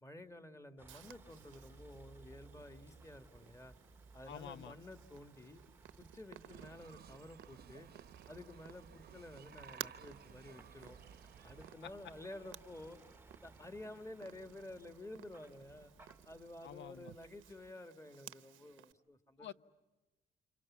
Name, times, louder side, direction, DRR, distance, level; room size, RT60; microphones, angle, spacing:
voice 1, 0.0-3.8 4.1-5.6 6.0-7.9 8.3-11.0 11.4-13.0 13.4-19.5, left 1 dB, 15° left, 8 dB, 1.7 m, -52 dB
Vehicle, 0.8-17.7, right 3 dB, 10° right, 1.0 m, -62 dB
Purr, 0.9-18.9, right 13 dB, 80° right, 0.9 m, -57 dB
voice 2, 4.3-4.7 11.8-11.9 16.6-17.1 19.4-19.5, left 9 dB, 70° left, 14 dB, 0.9 m, -48 dB
sound 1, 6.5-11.7, right 8 dB, 50° right, 0.8 m, -58 dB
30.0 x 27.0 x 7.3 m, 1.1 s
cardioid pair, 90°, 20 cm